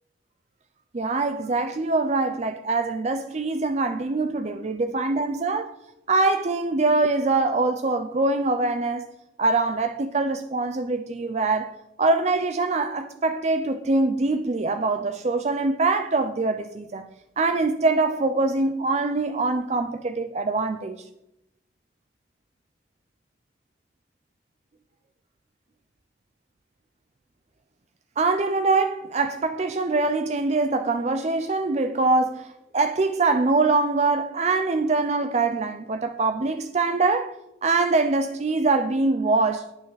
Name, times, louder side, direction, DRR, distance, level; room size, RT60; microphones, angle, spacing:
voice 1, 0.9-5.7 6.1-9.0 9.4-17.1 17.4-21.1 28.2-37.3 37.6-39.7, right 3 dB, 35° right, 0.5 m, -23 dB
10.5 x 9.4 x 4.0 m
head